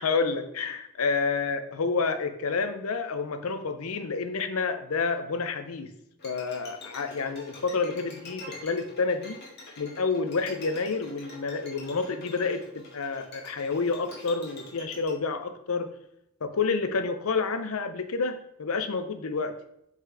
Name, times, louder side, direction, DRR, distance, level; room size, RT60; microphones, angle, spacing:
voice 1, 0.0-5.9 6.2-9.4 9.8-15.9 16.4-19.5, left 4 dB, 85° left, 9 dB, 0.7 m, -29 dB
Bowed string instrument, 6.2-15.1, left 2 dB, 55° left, 1.9 m, -46 dB
5.4 x 4.0 x 4.7 m, 0.81 s
head